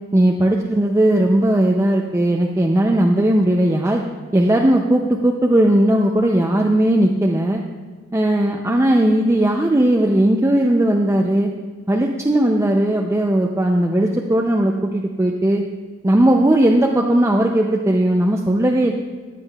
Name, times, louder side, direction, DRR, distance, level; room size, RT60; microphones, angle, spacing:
voice 1, 0.1-4.0 4.3-7.6 8.1-11.5 11.9-15.6 16.0-18.9, right 1 dB, 15° right, 1 dB, 0.4 m, -17 dB
14.0 x 9.8 x 2.3 m, 1.5 s
head